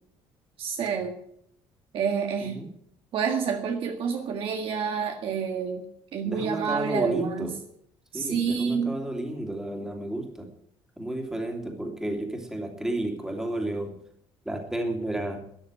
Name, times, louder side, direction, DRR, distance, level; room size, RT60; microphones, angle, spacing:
voice 1, 0.6-1.2 1.9-2.6 3.1-5.9 6.1-7.5 8.1-9.0, right 6 dB, 60° right, 3 dB, 1.8 m, -28 dB
voice 2, 2.4-2.7 6.2-7.6 8.1-10.5 11.0-14.0 14.4-15.4, right 1 dB, 5° right, 3 dB, 2.9 m, -32 dB
13.5 x 10.5 x 9.0 m, 0.69 s
cardioid pair, 150°, 11 cm